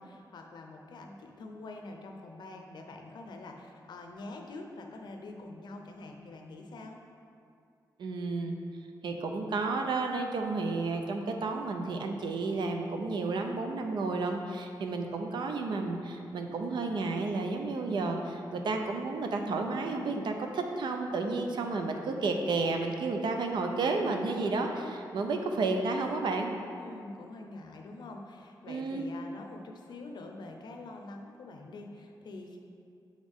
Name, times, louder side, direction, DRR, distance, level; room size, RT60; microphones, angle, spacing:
voice 1, 0.0-7.0 26.7-32.6, left 2 dB, 70° left, 3 dB, 0.6 m, -45 dB
voice 2, 8.0-8.6 9.0-26.6 28.7-29.1, right 3 dB, 80° right, 4 dB, 0.5 m, -31 dB
7.2 x 3.7 x 3.6 m, 2.4 s
wide cardioid pair, 145°, 8 cm